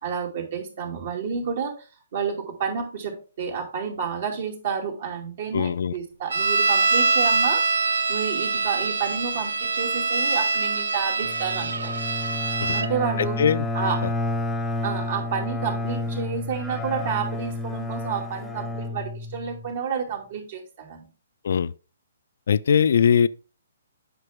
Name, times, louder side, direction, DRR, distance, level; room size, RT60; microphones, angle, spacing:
voice 1, 0.0-7.6 8.1-11.9 12.7-13.4 13.7-14.0 14.8-21.1, right 6 dB, 55° right, 2.6 m, -30 dB
voice 2, 5.5-6.0 12.6-12.7 13.2-13.7 21.4-21.7 22.5-23.3, left 7 dB, 65° left, 0.4 m, -21 dB
sound 1, 6.3-12.9, right 3 dB, 75° right, 0.7 m, -24 dB
Bowed string instrument, 11.2-19.7, left 2 dB, 5° left, 0.9 m, -30 dB
7.9 x 5.9 x 3.5 m
hypercardioid pair, 140°, 0 cm